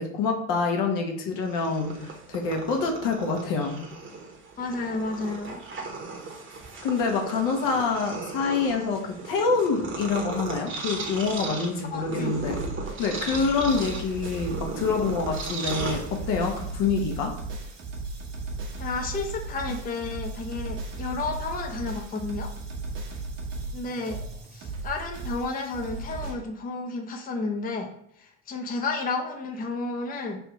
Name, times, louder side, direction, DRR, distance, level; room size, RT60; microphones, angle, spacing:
voice 1, 0.0-3.8 6.8-12.6 13.0-17.3, left 4 dB, 65° left, 2 dB, 1.1 m, -26 dB
Purr, 1.4-16.5, right 3 dB, 35° right, 1.2 m, -36 dB
voice 2, 4.6-5.6 11.9-12.4 18.8-22.5 23.7-24.2 24.5-27.9 28.2-30.4, left 3 dB, 25° left, 1 dB, 0.7 m, -32 dB
sound 1, 12.2-26.3, right 3 dB, 60° right, 1.3 m, -36 dB
3.4 x 2.7 x 4.6 m, 0.71 s
hypercardioid pair, 75°, 35 cm